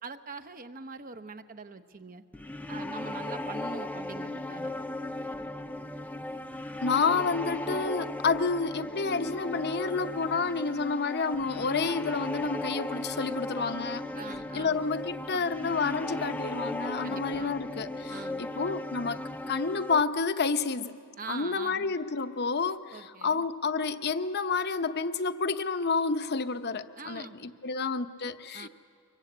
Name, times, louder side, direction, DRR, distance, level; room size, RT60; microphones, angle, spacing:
voice 1, 0.0-2.2 2.7-4.7 14.2-14.8 17.0-17.5 18.1-18.5 21.2-21.9 22.9-23.4 27.0-27.4 28.5-28.7, right 4 dB, 40° right, 9 dB, 0.9 m, -43 dB
sound 1, 2.3-20.0, left 1 dB, 5° left, 0.5 m, -36 dB
voice 2, 6.8-14.1 14.5-21.0 21.3-28.7, left 4 dB, 50° left, 10 dB, 0.8 m, -30 dB
24.5 x 22.5 x 8.4 m, 2.3 s
head